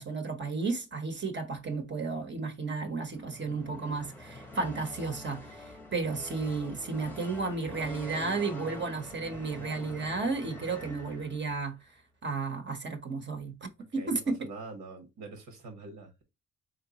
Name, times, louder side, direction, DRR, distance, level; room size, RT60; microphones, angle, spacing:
voice 1, 0.0-11.7 12.2-14.4, right 4 dB, 35° right, 1.0 m, -33 dB
sound 1, 3.0-11.7, left 1 dB, 5° left, 0.9 m, -45 dB
voice 2, 14.0-16.2, right 3 dB, 80° right, 1.4 m, -44 dB
4.0 x 3.2 x 2.9 m
cardioid pair, 90°, 30 cm